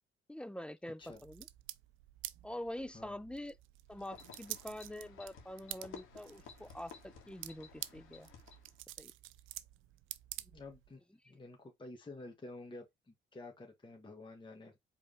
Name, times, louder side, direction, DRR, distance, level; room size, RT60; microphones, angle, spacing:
voice 1, 0.3-1.5 2.4-3.6 3.9-8.3 9.0-9.1, left 1 dB, 5° left, 0.4 m, -45 dB
sound 1, 1.0-11.0, right 15 dB, 90° right, 0.5 m, -49 dB
sound 2, 3.9-8.8, left 6 dB, 85° left, 1.8 m, -55 dB
voice 2, 10.4-14.8, left 2 dB, 25° left, 1.6 m, -51 dB
4.8 x 3.5 x 3.1 m
cardioid pair, 90°, 20 cm